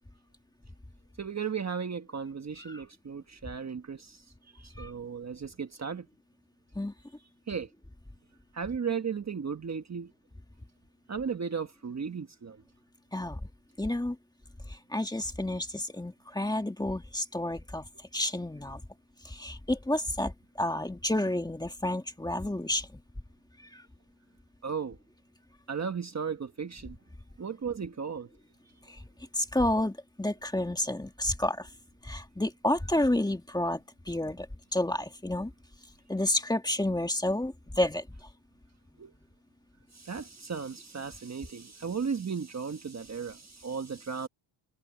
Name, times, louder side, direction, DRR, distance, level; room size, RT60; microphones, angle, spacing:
voice 1, 1.2-4.2 4.6-6.1 7.5-7.7 8.5-10.1 11.1-12.6 24.6-25.0 25.7-27.0 27.4-28.3 39.0-39.1 39.9-44.3, right 6 dB, 35° right, 1.3 m, -35 dB
voice 2, 13.8-14.2 14.9-17.8 18.1-18.8 19.3-20.3 20.6-22.9 29.4-31.7 32.1-33.8 34.1-34.5 34.7-35.5 36.1-38.0, left 1 dB, 10° left, 1.9 m, -30 dB
cardioid pair, 125°, 49 cm